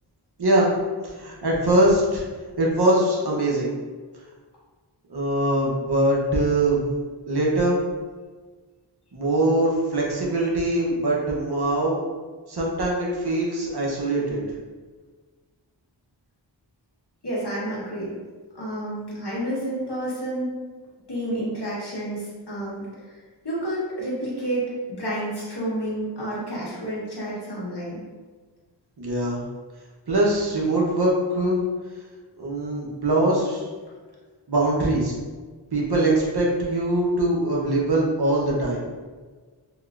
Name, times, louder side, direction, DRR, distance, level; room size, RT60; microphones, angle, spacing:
voice 1, 1.0-2.2 2.6-3.7 5.1-6.8 7.3-7.8 9.1-12.0 12.5-14.4 29.0-29.4 30.1-31.6 32.4-33.7 34.5-35.1 35.7-38.8, right 1 dB, 60° right, -3 dB, 0.9 m, -22 dB
voice 2, 17.2-18.2 18.5-20.5 21.1-23.2 23.4-28.0, right 1 dB, 60° left, -7 dB, 1.3 m, -30 dB
3.5 x 2.9 x 2.4 m, 1.4 s
wide cardioid pair, 45°, 45 cm